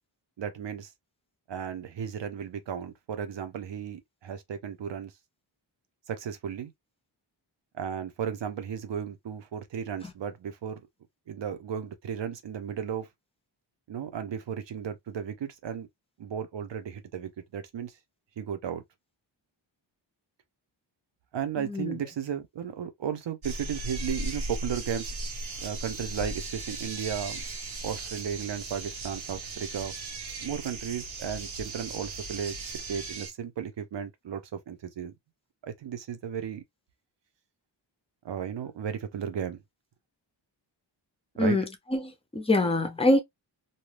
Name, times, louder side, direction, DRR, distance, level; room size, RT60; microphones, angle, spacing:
voice 1, 0.4-0.9 1.5-5.1 6.1-6.7 7.7-10.8 11.3-13.1 13.9-15.9 16.2-17.9 18.4-18.8 21.3-25.1 25.6-27.4 27.8-29.9 30.4-32.5 32.9-35.1 35.6-36.6 38.2-39.6 41.4-41.6, right 8 dB, 70° right, 0.7 m, -34 dB
voice 2, 21.6-22.0 41.4-43.2, left 2 dB, 15° left, 0.5 m, -25 dB
sound 1, 23.4-33.3, right 2 dB, 90° right, 1.0 m, -37 dB
2.7 x 2.3 x 3.2 m
wide cardioid pair, 170°, 45 cm